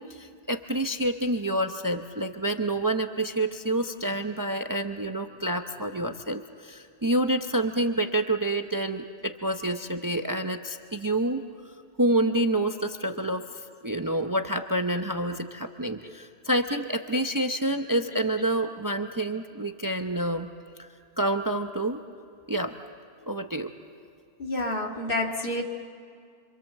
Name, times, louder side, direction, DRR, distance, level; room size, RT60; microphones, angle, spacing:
voice 1, 0.0-11.4 12.0-13.5 13.8-20.5 20.8-20.9 21.2-22.0 22.5-22.7 23.3-23.7, right 1 dB, 20° right, 6 dB, 0.7 m, -28 dB
voice 2, 24.4-25.6, left 1 dB, 60° left, 1 dB, 2.1 m, -30 dB
26.5 x 26.0 x 7.4 m, 2.3 s
omnidirectional pair, 1.1 m